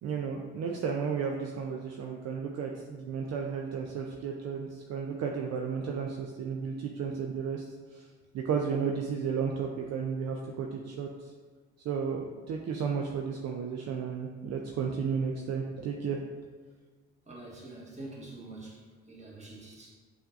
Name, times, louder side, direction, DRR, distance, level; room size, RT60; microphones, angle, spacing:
voice 1, 0.0-7.6 7.9-8.1 8.3-11.3 11.8-16.2, right 6 dB, 55° right, 1 dB, 0.5 m, -33 dB
voice 2, 17.3-18.8 19.1-19.9, right 2 dB, 20° right, -4 dB, 1.4 m, -45 dB
6.7 x 2.6 x 2.4 m, 1.4 s
hypercardioid pair, 45°, 31 cm